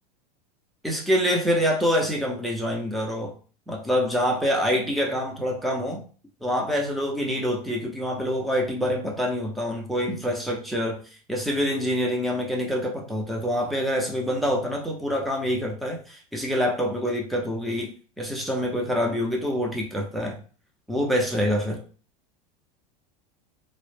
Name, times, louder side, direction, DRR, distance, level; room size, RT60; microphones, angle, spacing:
voice 1, 0.8-3.3 3.7-6.0 6.4-11.0 11.3-17.9 18.2-20.4 20.9-21.8, equal, ahead, -1 dB, 0.5 m, -26 dB
2.0 x 2.0 x 3.2 m, 0.39 s
supercardioid pair, 115°, 21 cm